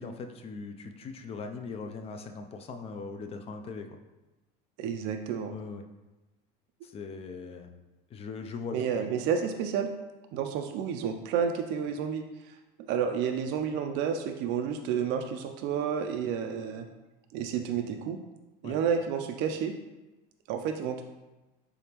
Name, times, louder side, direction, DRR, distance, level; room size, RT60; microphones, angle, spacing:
voice 1, 0.0-4.0 5.5-5.8 6.8-7.7 8.1-8.8 18.6-18.8, left 4 dB, 30° left, 6 dB, 0.4 m, -40 dB
voice 2, 4.8-5.5 8.7-9.9 10.3-12.5 12.9-16.9 17.3-18.2 18.6-19.7 20.5-21.0, right 7 dB, 60° right, 5 dB, 0.4 m, -30 dB
3.8 x 3.5 x 2.9 m, 1.1 s
supercardioid pair, 120°, 21 cm